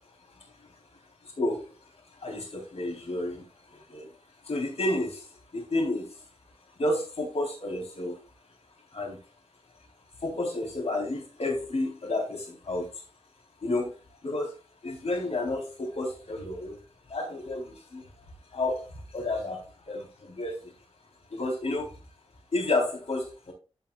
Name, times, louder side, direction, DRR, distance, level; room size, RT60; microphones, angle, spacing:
voice 1, 2.2-3.4 3.9-4.1 4.5-5.2 5.5-6.1 6.8-8.2 8.9-9.2 10.2-12.9 13.6-13.9 14.2-14.5 14.8-16.8 17.1-18.0 18.5-18.8 19.1-20.5 21.3-21.9 22.5-23.5, left 2 dB, 70° left, 0 dB, 3.7 m, -30 dB
15.0 x 5.6 x 2.4 m, 0.32 s
wide cardioid pair, 90°, 11 cm